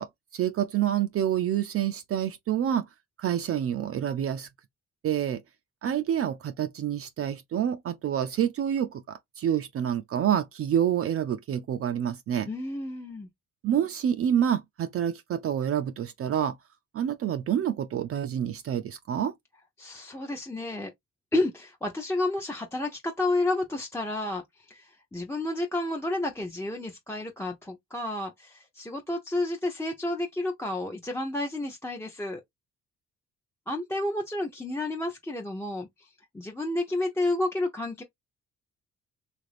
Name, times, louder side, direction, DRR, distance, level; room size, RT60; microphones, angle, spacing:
voice 1, 0.0-2.9 3.2-4.5 5.0-5.4 5.8-12.5 13.6-16.6 16.9-19.4, right 9 dB, 50° right, 0.4 m, -28 dB
voice 2, 12.5-13.3 19.8-20.9 21.3-32.4 33.7-38.0, left 2 dB, 10° left, 0.6 m, -31 dB
3.3 x 2.5 x 3.2 m
cardioid pair, 90°, 30 cm